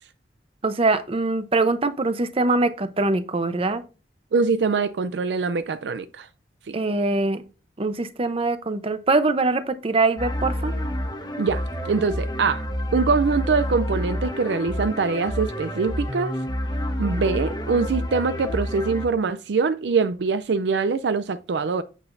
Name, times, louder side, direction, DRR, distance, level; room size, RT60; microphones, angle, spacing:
voice 1, 0.6-3.8 6.7-7.4 7.8-10.7, right 3 dB, 35° right, 0.7 m, -23 dB
voice 2, 4.3-6.3 6.7-6.8 11.4-12.7 12.9-16.4 17.0-21.8, right 4 dB, 70° right, 0.4 m, -23 dB
sound 1, 10.2-19.1, equal, 25° left, 1.2 m, -29 dB
8.4 x 7.7 x 2.6 m
head